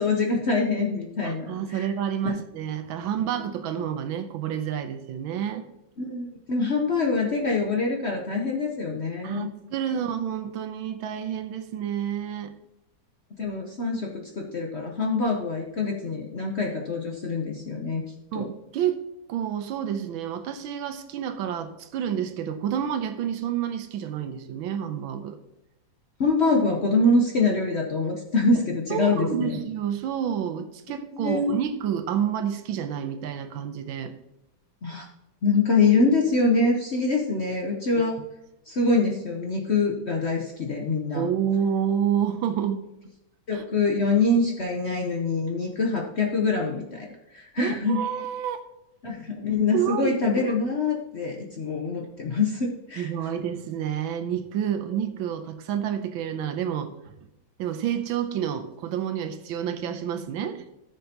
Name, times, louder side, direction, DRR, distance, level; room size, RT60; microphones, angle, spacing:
voice 1, 0.0-1.9 2.2-2.3 6.0-9.5 13.4-18.0 18.3-18.5 26.2-29.6 31.1-31.5 34.8-35.1 35.4-38.2 38.7-41.3 43.5-47.1 47.3-48.0 49.0-53.1, left 3 dB, 50° left, 0 dB, 0.8 m, -25 dB
voice 2, 1.2-5.7 9.2-12.5 18.3-19.0 19.3-25.4 28.9-34.1 41.1-42.8 43.5-43.6 47.6-48.6 49.7-50.1 53.0-56.9 57.6-60.7, right 9 dB, 90° right, 8 dB, 1.5 m, -29 dB
13.5 x 6.6 x 2.9 m, 0.90 s
omnidirectional pair, 2.2 m